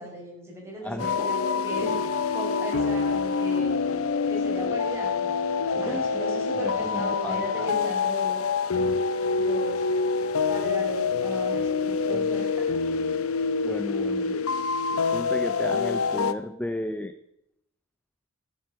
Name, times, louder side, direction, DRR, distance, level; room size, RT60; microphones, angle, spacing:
voice 1, 0.0-2.0 2.3-3.9 4.3-5.3 5.8-8.4 9.3-9.8 10.5-12.5, equal, 15° right, -2 dB, 5.3 m, -36 dB
voice 2, 0.8-1.6 5.7-6.2 6.6-7.7 13.6-14.5 14.9-17.1, left 1 dB, 5° left, 11 dB, 0.5 m, -34 dB
sound 1, 1.0-16.3, left 5 dB, 75° left, 0.8 m, -26 dB
13.0 x 8.3 x 8.0 m, 0.83 s
head